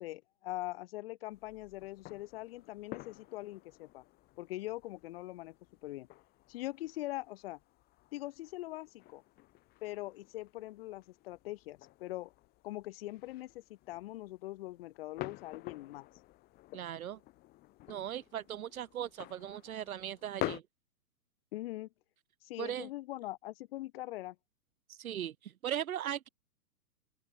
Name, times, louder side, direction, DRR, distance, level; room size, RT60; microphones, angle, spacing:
voice 1, 0.0-4.0 4.4-5.6 5.8-6.1 6.5-7.6 8.1-9.2 9.8-12.3 12.6-16.1 21.5-21.9 22.4-24.4, left 17 dB, 35° left, 2.7 m, -42 dB
sound 1, 1.3-20.6, left 18 dB, 20° left, 2.2 m, -49 dB
voice 2, 16.7-17.2 17.9-20.6 22.6-22.9 24.9-26.3, right 10 dB, 60° right, 3.3 m, -38 dB
hypercardioid pair, 160°, 48 cm